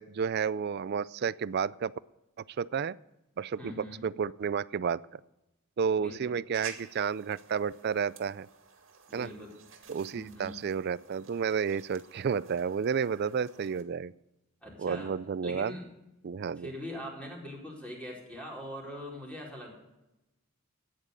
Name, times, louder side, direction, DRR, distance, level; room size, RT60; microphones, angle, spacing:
voice 1, 0.0-1.9 2.6-3.0 3.4-5.0 5.8-8.5 9.1-9.3 9.9-14.1 14.8-15.8 16.2-16.7, right 6 dB, 50° right, 20 dB, 0.4 m, -31 dB
voice 2, 3.6-4.1 6.0-6.3 9.1-9.5 10.1-10.6 14.6-15.1 15.4-15.9 16.6-19.7, equal, 5° left, -3 dB, 4.5 m, -42 dB
sound 1, 6.5-13.8, right 6 dB, 65° right, 2.1 m, -52 dB
13.5 x 9.7 x 6.6 m, 0.94 s
head